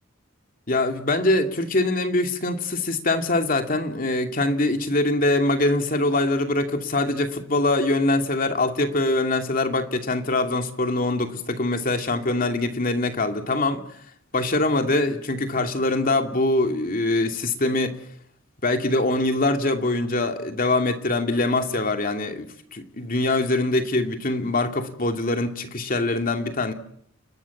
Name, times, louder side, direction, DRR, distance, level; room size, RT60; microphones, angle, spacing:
voice 1, 0.7-13.8 14.3-18.0 18.6-26.7, left 2 dB, 45° left, 5 dB, 2.6 m, -23 dB
29.5 x 19.5 x 7.2 m, 0.69 s
head